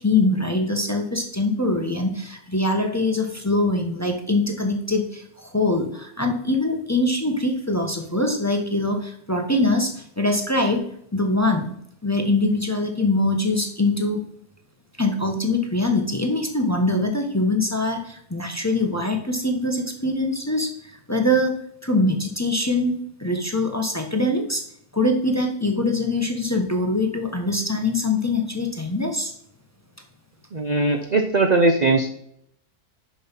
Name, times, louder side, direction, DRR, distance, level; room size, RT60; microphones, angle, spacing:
voice 1, 0.0-10.8 11.1-11.7 12.0-14.2 15.0-20.7 21.1-21.5 21.8-22.9 23.2-24.6 24.9-29.3, left 2 dB, 15° left, 3 dB, 0.8 m, -23 dB
voice 2, 30.5-32.1, right 3 dB, 50° right, 5 dB, 0.5 m, -19 dB
7.0 x 6.0 x 6.0 m, 0.70 s
omnidirectional pair, 1.8 m